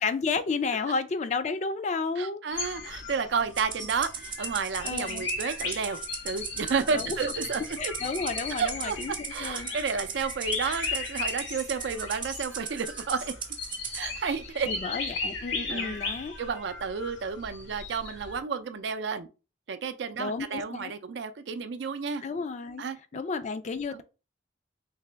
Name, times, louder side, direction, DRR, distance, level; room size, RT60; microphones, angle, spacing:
voice 1, 0.0-2.4 4.8-5.3 6.9-7.2 7.8-9.1 9.4-9.7 14.6-16.3 20.2-20.9 22.2-22.8 23.1-24.0, left 4 dB, 40° left, 0.3 m, -31 dB
voice 2, 2.2-6.0 6.2-7.9 8.6-9.0 9.3-13.3 13.9-14.7 15.7-16.0 16.4-19.3 19.7-22.2 22.8-23.0 23.9-24.0, right 5 dB, 65° right, 0.4 m, -31 dB
sound 1, 2.5-18.4, left 4 dB, 80° left, 1.0 m, -37 dB
Rattle (instrument), 3.6-14.0, right 6 dB, 25° right, 0.6 m, -38 dB
3.4 x 2.9 x 3.3 m
head